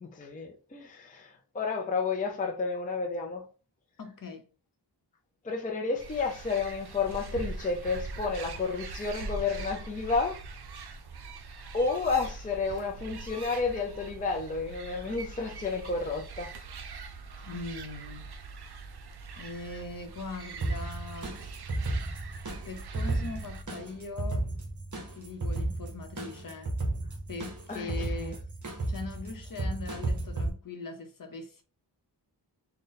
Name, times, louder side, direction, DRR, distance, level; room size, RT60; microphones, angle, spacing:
voice 1, 0.0-3.5 5.4-10.4 11.7-16.5 22.1-22.2 27.7-28.4, left 4 dB, 20° left, 0.4 m, -31 dB
voice 2, 4.0-4.4 17.4-18.3 19.4-21.3 22.7-24.5 25.2-26.7 27.3-28.4 28.9-31.6, left 3 dB, 50° left, 0.8 m, -41 dB
sound 1, 6.0-23.6, right 4 dB, 65° right, 0.6 m, -42 dB
sound 2, 20.6-30.5, right 2 dB, 45° right, 1.2 m, -33 dB
3.9 x 2.2 x 3.9 m
wide cardioid pair, 120°, 42 cm